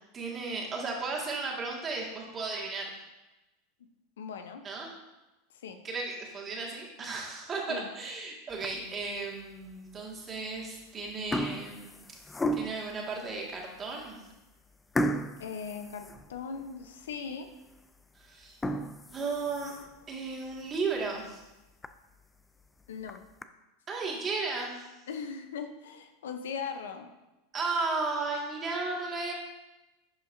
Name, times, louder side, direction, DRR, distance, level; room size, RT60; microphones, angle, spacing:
voice 1, 0.1-3.0 4.6-4.9 5.8-11.9 12.5-14.2 18.1-18.6 19.1-19.7 20.1-21.4 23.9-24.8 27.5-29.3, right 3 dB, 30° right, -1 dB, 1.9 m, -34 dB
voice 2, 4.2-4.6 5.6-5.8 7.7-7.9 15.4-17.5 22.9-23.2 25.1-27.1, left 6 dB, 85° left, 7 dB, 0.7 m, -39 dB
sound 1, 8.5-9.0 9.6-9.7 10.6-10.8 11.1-13.0 13.6-13.7 14.0-14.1 14.9-16.7 17.1-17.2 17.7-17.8 18.4-20.0 20.5-20.6 21.0-21.1 21.4-21.5 21.8-21.9 22.8-23.4, equal, 15° left, 0.4 m, -34 dB
11.0 x 5.2 x 2.7 m, 1.0 s
hypercardioid pair, 105°, 0 cm